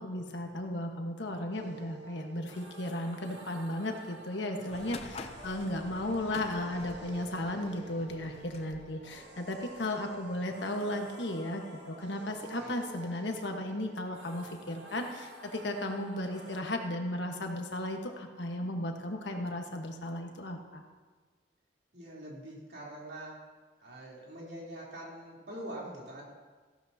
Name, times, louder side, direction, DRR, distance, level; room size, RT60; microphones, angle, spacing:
voice 1, 0.0-20.8, left 1 dB, 75° left, 3 dB, 1.4 m, -35 dB
sound 1, 1.5-16.6, right 2 dB, 85° right, 1.8 m, -49 dB
sound 2, 4.7-10.6, left 3 dB, 35° left, 0.5 m, -49 dB
voice 2, 4.7-5.2 12.5-12.8 21.9-23.4 23.8-26.3, right 1 dB, 60° right, -5 dB, 3.4 m, -44 dB
15.5 x 12.5 x 2.8 m, 1.4 s
head